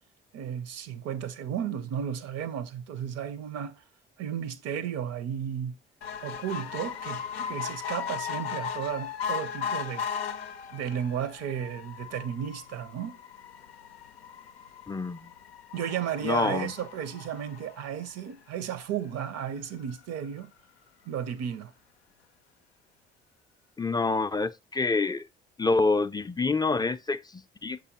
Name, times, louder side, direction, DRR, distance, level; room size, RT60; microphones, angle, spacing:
voice 1, 0.3-3.8 4.2-5.8 6.2-10.1 10.7-13.2 15.7-20.5 21.1-21.7, right 9 dB, 60° right, 0.7 m, -34 dB
sound 1, 6.0-18.6 19.2-19.3 19.6-19.7 19.9-20.0, left 7 dB, 85° left, 0.5 m, -37 dB
voice 2, 14.9-15.3 16.2-16.7 23.8-25.3 25.6-27.8, left 3 dB, 15° left, 0.4 m, -27 dB
6.8 x 5.2 x 2.8 m
hypercardioid pair, 45°, 30 cm